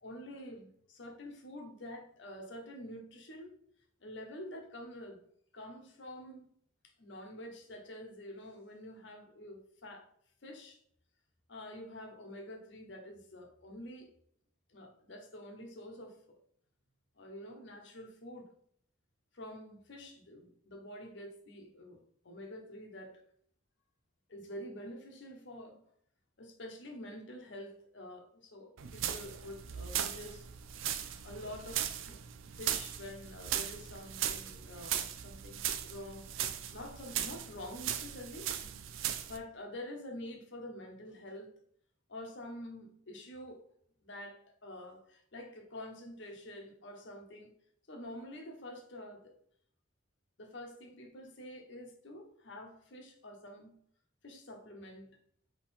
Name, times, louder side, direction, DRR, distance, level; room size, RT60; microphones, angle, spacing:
voice 1, 0.0-3.5 4.0-5.2 5.5-6.5 7.0-10.1 10.4-10.8 11.5-14.1 14.7-16.4 17.2-18.5 19.3-23.2 24.3-25.8 26.4-30.4 31.2-32.2 32.5-38.5 39.3-41.5 42.1-43.6 44.0-47.5 47.9-49.3 50.4-53.8 54.2-55.1, left 1 dB, 65° left, 2 dB, 0.9 m, -47 dB
Palm Hit, 28.8-39.4, right 10 dB, 80° right, 0.4 m, -38 dB
3.7 x 3.1 x 4.2 m, 0.65 s
head